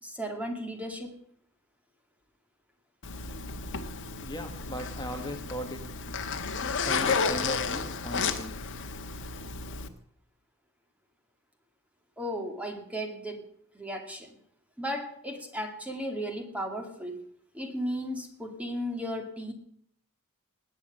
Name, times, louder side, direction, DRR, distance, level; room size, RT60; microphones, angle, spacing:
voice 1, 0.0-1.2 12.2-13.5 13.7-14.4 14.8-17.2 17.5-19.5, equal, 5° right, 4 dB, 2.3 m, -35 dB
Zipper (clothing), 3.0-9.9, left 5 dB, 55° left, 1.4 m, -32 dB
voice 2, 4.2-5.8 6.8-8.5, equal, 20° left, 4 dB, 1.4 m, -37 dB
19.5 x 9.4 x 6.6 m, 0.69 s
head